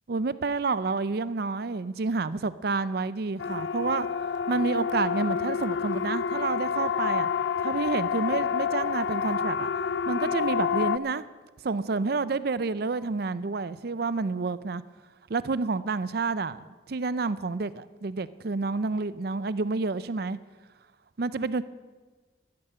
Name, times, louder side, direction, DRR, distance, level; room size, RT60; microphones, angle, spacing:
voice 1, 0.1-4.1 4.5-7.3 7.6-9.7 10.1-11.3 11.6-14.8 15.3-20.4 21.2-21.6, right 4 dB, 55° right, 0.5 m, -29 dB
Siren, 3.4-11.0, left 6 dB, 75° left, 0.5 m, -28 dB
13.0 x 11.0 x 8.0 m
head